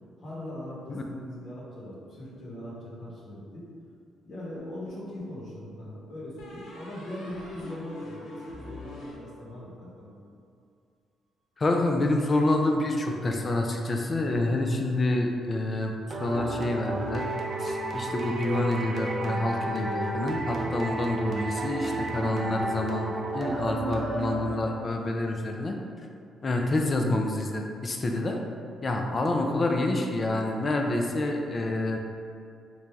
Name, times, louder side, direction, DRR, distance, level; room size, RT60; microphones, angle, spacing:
voice 1, 0.2-3.6 4.2-10.2, left 1 dB, 60° left, -8 dB, 1.2 m, -40 dB
sound 1, 4.6-5.4 6.4-9.9, left 1 dB, 80° left, 0.6 m, -46 dB
voice 2, 11.6-15.9 16.2-17.2 17.6-25.8 26.4-28.4 28.8-32.0, left 2 dB, 35° left, 2 dB, 0.4 m, -27 dB
sound 2, 16.1-25.0, right 2 dB, 45° right, 0.5 m, -32 dB
3.2 x 2.6 x 3.4 m, 2.3 s
cardioid pair, 90°, 0 cm